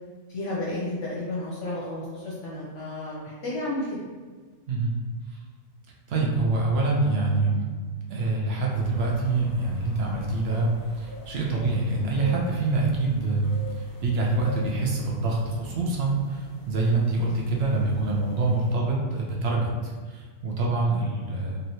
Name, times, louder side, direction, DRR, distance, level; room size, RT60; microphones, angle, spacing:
voice 1, 0.3-3.9, left 2 dB, 65° left, -6 dB, 0.9 m, -32 dB
voice 2, 6.1-7.8 8.1-10.7 10.9-13.5 14.0-21.6, right 3 dB, 65° right, -2 dB, 0.6 m, -25 dB
sound 1, 8.7-18.7, left 2 dB, 35° left, 0.3 m, -45 dB
3.1 x 2.7 x 2.7 m, 1.5 s
omnidirectional pair, 1.5 m